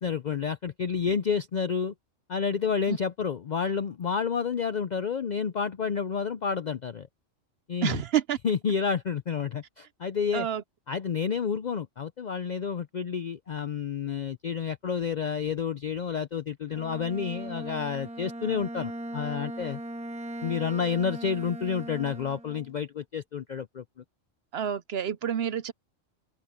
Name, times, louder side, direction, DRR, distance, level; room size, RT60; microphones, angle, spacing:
voice 1, 0.0-1.9 2.3-7.1 7.7-8.0 8.4-10.5 10.9-19.8 20.4-23.8, left 6 dB, 60° left, 0.4 m, -30 dB
voice 2, 7.8-8.4 10.3-10.6 24.5-25.7, right 9 dB, 60° right, 0.7 m, -28 dB
Bowed string instrument, 16.7-22.8, right 1 dB, 5° right, 1.7 m, -39 dB
open air
omnidirectional pair, 1.3 m